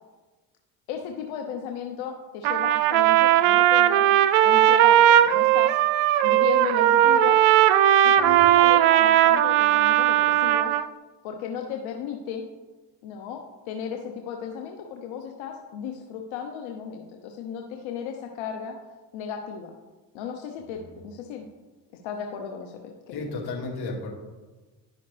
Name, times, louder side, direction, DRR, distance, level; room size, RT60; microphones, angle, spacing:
voice 1, 0.9-4.1 4.4-5.8 6.2-7.4 8.0-10.8 11.2-12.4 13.0-18.8 19.1-19.7 20.1-21.5 22.0-23.3, left 7 dB, 75° left, 3 dB, 0.9 m, -35 dB
Trumpet, 2.4-10.9, right 12 dB, 70° right, 0.5 m, -18 dB
voice 2, 8.1-8.5 20.7-20.9 23.1-24.1, left 3 dB, 50° left, -1 dB, 2.3 m, -34 dB
11.0 x 5.7 x 3.3 m, 1.2 s
supercardioid pair, 70°, 48 cm